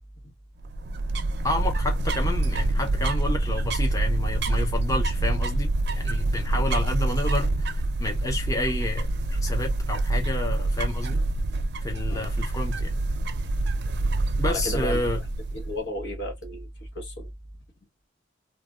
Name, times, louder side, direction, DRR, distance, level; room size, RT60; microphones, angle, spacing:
sound 1, 0.6-15.8, right 2 dB, 65° right, 0.5 m, -26 dB
voice 1, 1.4-11.2 11.8-12.9 14.4-15.2, left 2 dB, 20° left, 0.6 m, -30 dB
voice 2, 14.4-15.0 15.5-16.7 16.9-17.3, left 1 dB, 65° left, 1.0 m, -33 dB
3.1 x 2.2 x 2.3 m
head